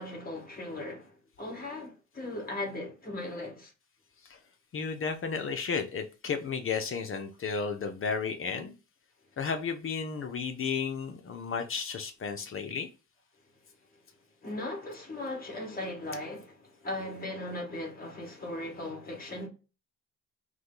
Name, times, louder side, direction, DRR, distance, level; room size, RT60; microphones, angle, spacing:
voice 1, 0.0-3.7 14.4-16.6 16.8-19.5, left 1 dB, 30° left, 1.9 m, -38 dB
voice 2, 4.7-8.8 9.4-12.9, left 5 dB, 45° left, 0.7 m, -33 dB
4.9 x 2.2 x 3.9 m
cardioid pair, 90°, 30 cm